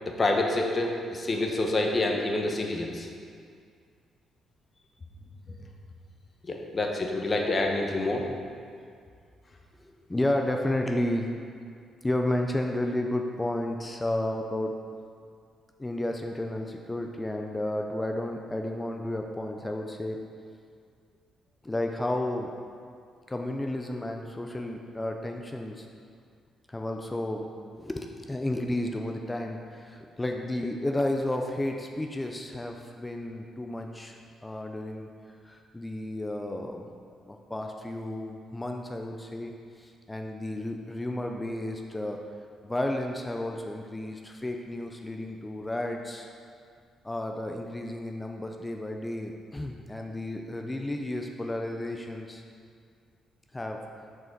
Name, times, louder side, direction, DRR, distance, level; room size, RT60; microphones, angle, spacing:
voice 1, 0.1-3.1 6.5-8.3, left 2 dB, 30° left, 1 dB, 0.9 m, -27 dB
voice 2, 9.8-11.3 12.0-14.8 15.8-20.2 21.6-22.5 23.3-25.9 26.7-27.5 27.8-35.1 35.4-36.9 37.2-39.5 39.8-42.2 42.6-46.3 47.0-52.4 53.5-53.8, left 1 dB, 15° left, 3 dB, 0.5 m, -32 dB
6.1 x 4.8 x 4.5 m, 2.2 s
cardioid pair, 90°, 0 cm